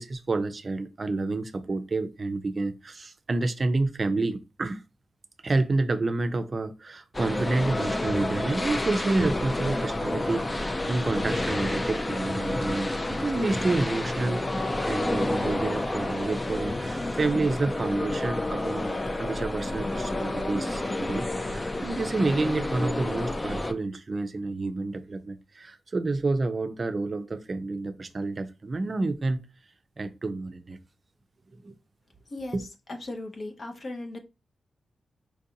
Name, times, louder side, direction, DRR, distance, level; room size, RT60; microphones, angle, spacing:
voice 1, 0.0-4.8 5.4-29.4 30.0-30.8 31.6-31.7 32.5-32.6, right 3 dB, 40° right, 0.5 m, -29 dB
sound 1, 7.1-23.7, left 1 dB, 20° left, 0.4 m, -29 dB
voice 2, 32.9-34.2, left 2 dB, 50° left, 0.7 m, -37 dB
4.5 x 2.5 x 2.7 m
cardioid pair, 90°, 0 cm